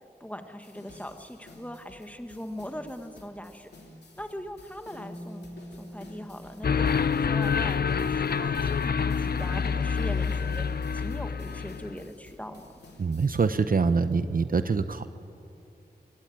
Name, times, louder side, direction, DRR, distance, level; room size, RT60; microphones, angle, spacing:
voice 1, 0.2-3.7 4.2-5.5 5.8-6.9 7.2-12.7, equal, 10° left, 6 dB, 1.5 m, -40 dB
sound 1, 0.6-13.5, left 1 dB, 90° left, 2.9 m, -52 dB
sound 2, 4.9-8.3, equal, 30° left, 3.1 m, -46 dB
sound 3, 6.6-12.0, left 6 dB, 70° left, 0.6 m, -27 dB
voice 2, 13.0-15.1, right 4 dB, 60° right, 11 dB, 0.7 m, -25 dB
23.5 x 16.0 x 9.1 m, 2.7 s
wide cardioid pair, 75°, 17 cm